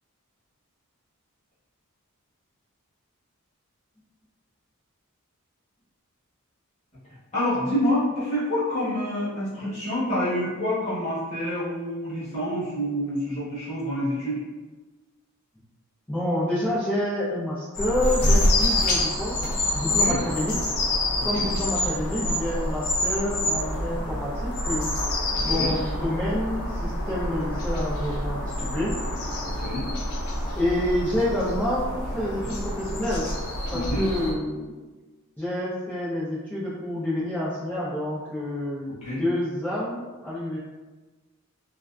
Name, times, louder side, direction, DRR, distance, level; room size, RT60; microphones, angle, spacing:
voice 1, 7.3-14.4 20.0-20.2 21.4-21.5 24.0-24.1 25.3-25.7 29.4-29.9 33.7-34.0 39.0-39.2, left 1 dB, 30° left, -10 dB, 1.0 m, -27 dB
voice 2, 16.1-20.5 21.2-24.9 25.4-28.9 30.5-33.3 33.7-34.7 35.4-40.6, left 1 dB, 10° left, -11 dB, 0.4 m, -28 dB
sound 1, 17.7-34.3, left 1 dB, 90° left, 0.6 m, -27 dB
2.4 x 2.3 x 2.2 m, 1.2 s
head